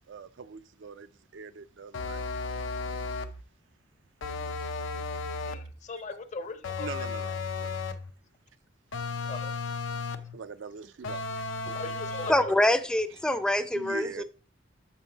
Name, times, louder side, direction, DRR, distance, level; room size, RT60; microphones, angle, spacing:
voice 1, 0.1-2.3 4.6-4.7 5.1-5.2 6.8-7.9 10.3-11.5 12.2-12.3 13.7-14.2, right 5 dB, 70° right, 0.5 m, -43 dB
sound 1, 1.9-3.4 4.2-5.7 6.6-8.1 8.9-10.4 11.0-12.5, left 4 dB, 85° left, 0.6 m, -34 dB
voice 2, 5.4-6.9 9.2-9.5 11.8-12.6, left 3 dB, 40° left, 0.7 m, -39 dB
voice 3, 12.3-14.2, left 1 dB, 5° left, 0.4 m, -25 dB
6.9 x 5.6 x 4.0 m
head